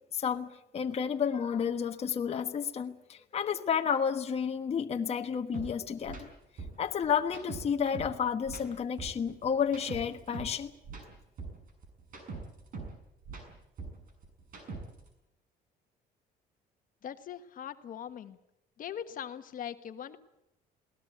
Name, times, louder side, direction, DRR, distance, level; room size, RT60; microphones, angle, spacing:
voice 1, 0.1-0.5 0.7-6.3 6.8-10.7, left 7 dB, 40° left, 5 dB, 1.3 m, -31 dB
sound 1, 5.5-5.7 6.0-6.2 6.6-8.2 8.4-10.6 10.8-13.0 13.2-15.1, right 4 dB, 55° right, 6.7 m, -42 dB
voice 2, 17.0-18.4 18.8-20.2, left 9 dB, 55° left, 9 dB, 1.4 m, -41 dB
21.5 x 18.0 x 9.2 m, 0.88 s
cardioid pair, 110°, 17 cm